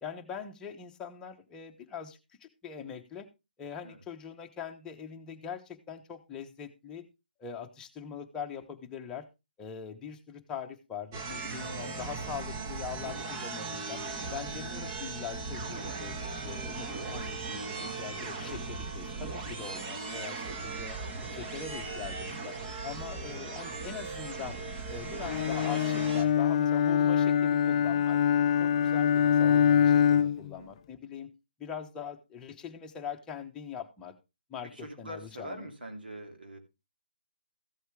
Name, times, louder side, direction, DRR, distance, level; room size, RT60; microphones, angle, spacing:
voice 1, 0.0-3.3 3.6-7.0 7.4-9.2 9.6-14.0 14.3-16.1 16.4-21.0 21.3-22.6 22.8-24.6 24.9-28.2 28.6-31.3 31.6-34.1 34.5-35.7, left 7 dB, 15° left, 3 dB, 1.1 m, -42 dB
sound 1, 11.1-26.2, right 3 dB, 30° right, 1.6 m, -38 dB
voice 2, 12.4-12.7 17.7-18.0 28.5-29.0 30.4-30.7 34.6-36.6, right 1 dB, 80° right, 3 dB, 3.1 m, -45 dB
Bowed string instrument, 25.3-30.5, left 8 dB, 40° left, 0.4 m, -24 dB
14.5 x 7.8 x 3.3 m, 0.26 s
figure-of-eight pair, 145°, 5 cm